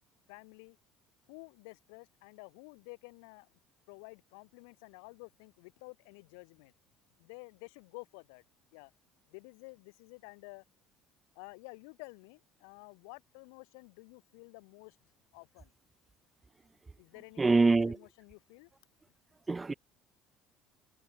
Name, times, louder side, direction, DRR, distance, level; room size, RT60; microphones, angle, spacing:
voice 1, 0.3-0.8 1.3-3.5 3.9-6.7 7.2-8.4 8.7-8.9 9.3-10.6 11.3-15.0 15.3-15.7 17.0-18.7, left 35 dB, 75° left, 2.9 m, -51 dB
voice 2, 17.4-17.9 19.5-19.7, right 3 dB, 20° right, 0.5 m, -24 dB
hypercardioid pair, 65°, 0 cm